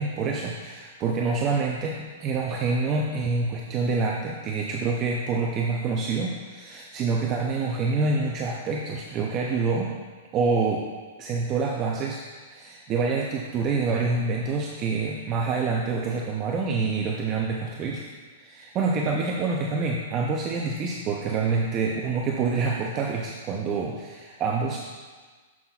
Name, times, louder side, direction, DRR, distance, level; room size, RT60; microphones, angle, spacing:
voice 1, 0.0-9.9 10.3-10.9 11.2-18.0 18.4-24.8, right 4 dB, 20° right, -1 dB, 0.5 m, -27 dB
12.0 x 5.7 x 2.3 m, 1.4 s
supercardioid pair, 170°, 0 cm